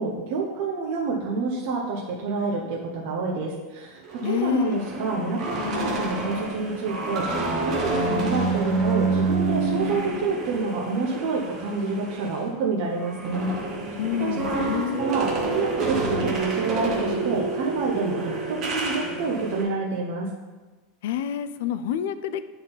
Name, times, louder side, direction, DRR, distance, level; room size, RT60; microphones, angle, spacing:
voice 1, 0.0-13.5 13.9-20.3, right 4 dB, 50° right, -2 dB, 1.0 m, -28 dB
sound 1, 4.0-12.4 12.8-19.6, right 3 dB, 25° right, 1.0 m, -28 dB
voice 2, 4.2-4.8 14.0-15.0 21.0-22.4, left 10 dB, 65° left, 12 dB, 0.4 m, -27 dB
9.4 x 4.0 x 4.0 m, 1.2 s
supercardioid pair, 175°, 0 cm